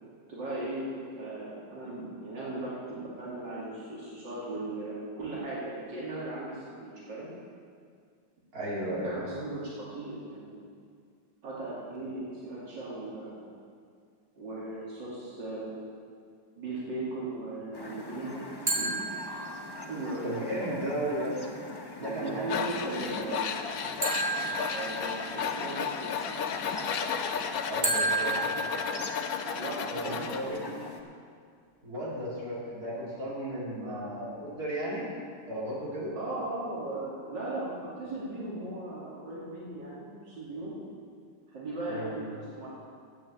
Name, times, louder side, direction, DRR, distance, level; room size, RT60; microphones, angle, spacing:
voice 1, 0.3-7.3 9.0-10.6 11.4-13.5 14.4-15.8 16.6-18.4 18.8-18.9 19.9-20.8 22.0-23.6 24.6-26.1 29.6-30.7 33.8-34.0 36.1-40.8 41.5-42.7, right 2 dB, 80° right, -8 dB, 3.2 m, -38 dB
voice 2, 8.5-9.1 20.2-21.3 22.0-23.2 27.7-28.3 29.9-30.6 31.8-35.1 35.5-36.1 41.9-42.1, right 1 dB, 55° right, -7 dB, 3.6 m, -34 dB
sound 1, 17.7-31.0, left 2 dB, 25° left, 0.5 m, -43 dB
sound 2, 18.7-20.0 24.0-25.5 27.8-29.5, right 3 dB, 10° right, 2.2 m, -32 dB
Tools, 22.5-30.4, left 7 dB, 65° left, 1.1 m, -33 dB
11.0 x 9.0 x 7.4 m, 2.2 s
omnidirectional pair, 1.9 m